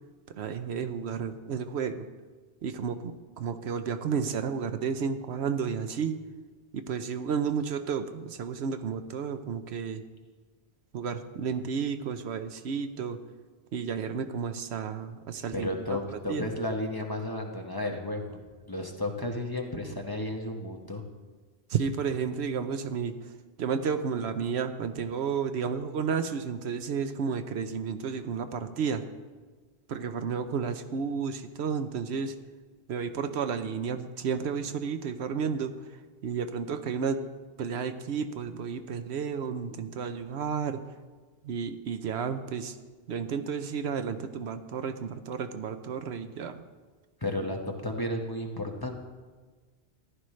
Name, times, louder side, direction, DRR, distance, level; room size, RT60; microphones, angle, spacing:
voice 1, 0.3-2.1 2.6-6.2 6.7-10.0 10.9-13.2 13.7-15.7 16.1-16.4 21.7-23.2 23.6-29.0 29.9-32.3 32.9-35.7 36.2-37.2 37.6-40.8 41.4-42.8 43.1-46.6, right 6 dB, 75° right, 9 dB, 0.9 m, -32 dB
voice 2, 15.5-18.4 18.7-21.0 47.2-49.0, left 1 dB, 20° left, 1 dB, 1.0 m, -33 dB
14.5 x 11.5 x 3.2 m, 1.4 s
omnidirectional pair, 1.1 m